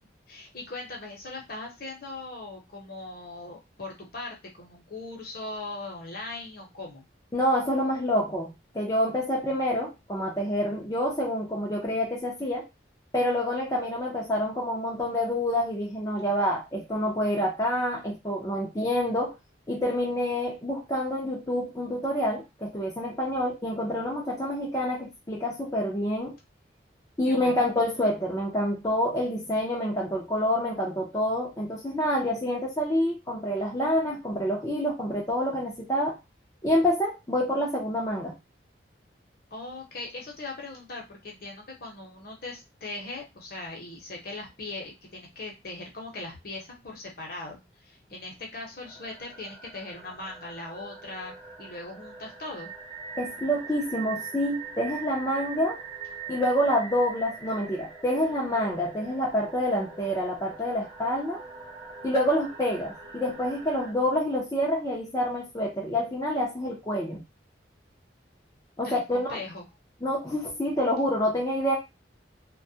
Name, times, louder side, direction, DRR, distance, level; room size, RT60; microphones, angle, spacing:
voice 1, 0.3-7.0 27.2-27.7 39.5-52.7 68.8-69.6, left 2 dB, 50° left, 0 dB, 0.8 m, -40 dB
voice 2, 7.3-12.7 13.1-19.3 19.7-26.4 27.2-36.2 36.6-38.3 53.2-55.8 56.3-61.4 62.0-67.2 68.8-69.4 70.0-71.7, equal, 20° left, -4 dB, 0.5 m, -27 dB
sound 1, 48.8-63.9, right 5 dB, 35° right, 0.9 m, -43 dB
2.2 x 2.1 x 2.7 m, 0.23 s
head